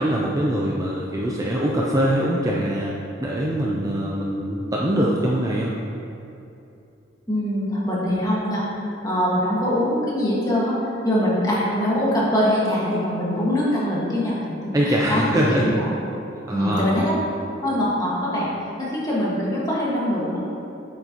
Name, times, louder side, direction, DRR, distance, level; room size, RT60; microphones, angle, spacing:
voice 1, 0.0-5.7 14.7-15.7 16.5-17.0, right 1 dB, 15° right, -4 dB, 0.5 m, -23 dB
voice 2, 7.3-8.6 9.0-10.8 11.0-15.9 16.5-17.1 17.6-18.5 18.8-20.4, left 1 dB, 20° left, -7 dB, 1.6 m, -23 dB
8.1 x 6.6 x 2.9 m, 2.8 s
head